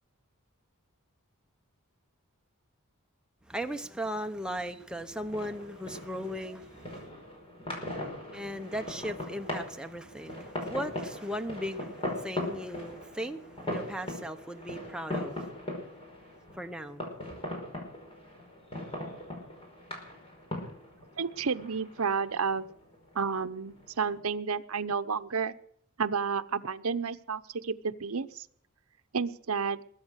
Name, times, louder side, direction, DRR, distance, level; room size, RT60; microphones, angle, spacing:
voice 1, 3.4-7.0 8.3-15.4 16.5-17.0, equal, 5° right, 1.0 m, -37 dB
sound 1, 4.9-24.2, left 1 dB, 25° left, 5.0 m, -40 dB
voice 2, 21.2-22.6 23.1-25.5 26.0-28.5 29.1-29.8, right 5 dB, 70° right, 0.8 m, -31 dB
21.5 x 8.9 x 6.5 m
head